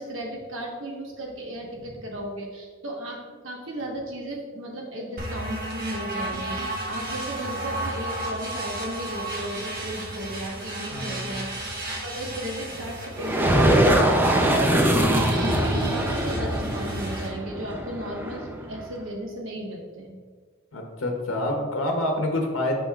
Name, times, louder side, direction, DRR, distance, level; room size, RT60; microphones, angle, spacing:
voice 1, 0.0-20.1, right 1 dB, 75° right, 0 dB, 1.2 m, -35 dB
sound 1, 5.2-17.3, right 1 dB, 45° right, 1.3 m, -33 dB
voice 2, 10.9-11.4 20.7-22.8, left 1 dB, 85° left, 2 dB, 0.8 m, -27 dB
sound 2, 13.2-18.8, right 1 dB, 10° right, 0.5 m, -22 dB
8.6 x 5.3 x 2.4 m, 1.5 s
head